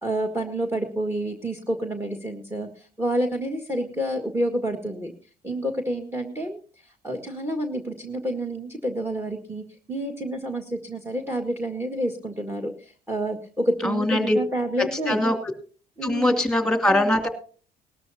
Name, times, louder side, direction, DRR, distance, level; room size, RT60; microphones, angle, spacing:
voice 1, 0.0-5.1 5.4-15.2 16.0-16.4, right 1 dB, 15° right, 4 dB, 1.9 m, -29 dB
voice 2, 13.8-14.4 15.1-15.4 16.0-17.3, left 1 dB, 5° left, 5 dB, 2.7 m, -21 dB
19.0 x 13.0 x 2.9 m, 0.40 s
cardioid pair, 110°, 17 cm